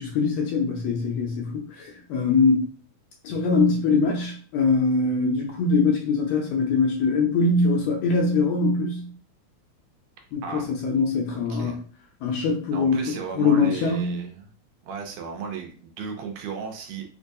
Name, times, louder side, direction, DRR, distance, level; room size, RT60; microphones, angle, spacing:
voice 1, 0.0-2.7 3.2-9.0 10.3-11.7 12.2-13.0 13.4-14.2, left 4 dB, 80° left, 1 dB, 1.5 m, -22 dB
voice 2, 11.3-11.8 12.7-14.5 14.8-17.1, right 6 dB, 80° right, 3 dB, 1.8 m, -35 dB
4.5 x 2.3 x 2.6 m, 0.43 s
omnidirectional pair, 3.3 m